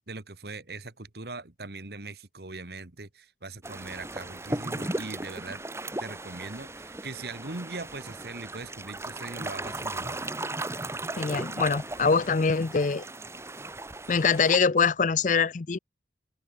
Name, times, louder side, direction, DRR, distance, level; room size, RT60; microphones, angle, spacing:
voice 1, 0.1-5.6 6.0-10.3, right 3 dB, 60° right, 1.6 m, -40 dB
sound 1, 3.6-14.6, right 2 dB, 15° right, 1.5 m, -36 dB
voice 2, 11.2-13.0 14.1-15.8, left 5 dB, 45° left, 0.5 m, -24 dB
head